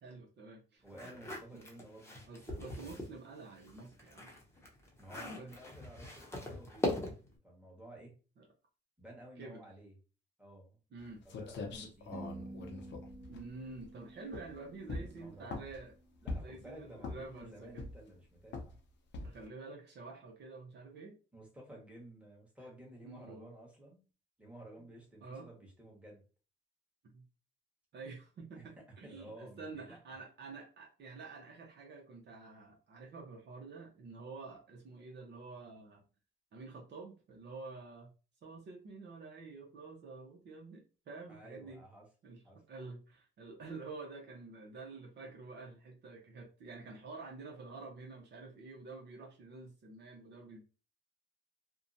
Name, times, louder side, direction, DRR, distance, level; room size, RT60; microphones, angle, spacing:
voice 1, 0.0-0.8 1.5-1.6 2.3-4.3 5.1-5.5 8.4-8.5 9.4-9.6 10.9-11.2 11.7-11.9 13.3-15.9 16.3-17.9 19.2-21.2 23.0-23.5 25.2-25.5 27.0-27.2 27.9-36.0 36.5-38.1 38.4-41.8 42.2-42.4 42.7-50.6, right 3 dB, 60° right, 0 dB, 0.7 m, -49 dB
voice 2, 0.8-2.2 5.0-7.0 7.4-8.2 9.0-9.9 10.4-10.8 11.2-12.3 14.9-15.7 16.2-18.8 21.3-24.1 24.4-26.2 28.5-30.2 41.3-42.1 42.4-42.6, right 1 dB, 5° right, -2 dB, 1.2 m, -53 dB
sound 1, 0.9-3.1 3.6-7.4, left 1 dB, 15° left, 0.8 m, -41 dB
sound 2, 11.0-11.1 11.3-13.9 14.3-14.6 14.9-15.8 16.3-16.6 17.0-17.4 17.8-18.2 18.5-18.8 19.1-19.5, left 3 dB, 65° left, 0.6 m, -42 dB
sound 3, 12.1-16.4, right 2 dB, 35° right, 0.4 m, -51 dB
2.7 x 2.2 x 2.6 m, 0.35 s
cardioid pair, 90°, 20 cm